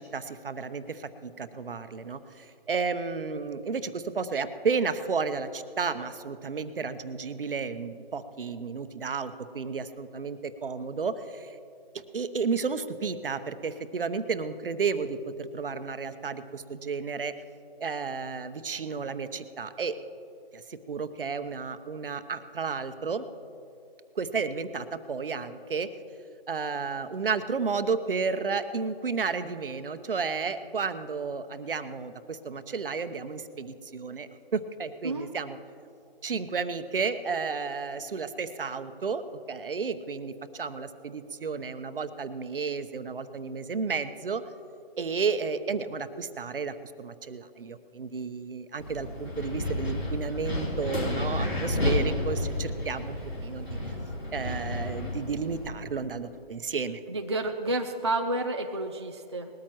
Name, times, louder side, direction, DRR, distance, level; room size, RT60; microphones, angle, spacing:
voice 1, 0.0-11.6 11.9-17.4 17.8-19.9 20.5-23.2 24.1-25.9 26.5-35.6 36.2-44.4 45.0-54.0 54.3-57.0, right 5 dB, 60° right, 11 dB, 0.9 m, -32 dB
voice 2, 35.0-35.4 57.1-59.5, right 2 dB, 30° right, 3 dB, 0.4 m, -30 dB
Wind, 48.8-55.7, left 1 dB, 80° left, 3.6 m, -31 dB
20.5 x 13.5 x 3.0 m, 2.6 s
figure-of-eight pair, 165°, 30 cm